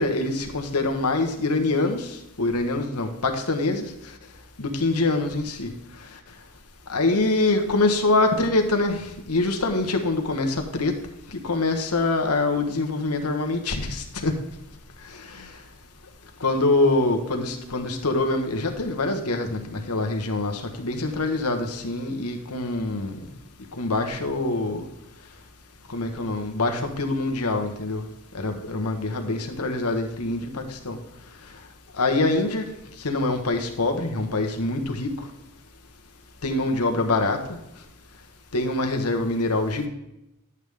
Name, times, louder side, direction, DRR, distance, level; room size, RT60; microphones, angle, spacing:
voice 1, 0.0-3.9 4.6-5.7 6.9-10.9 11.3-14.4 15.3-15.5 16.4-23.2 23.8-24.8 25.9-28.0 28.3-31.0 32.0-32.6 33.0-35.1 36.4-37.6 38.5-39.9, left 2 dB, 90° left, 4 dB, 1.4 m, -24 dB
11.0 x 8.2 x 3.5 m, 0.86 s
head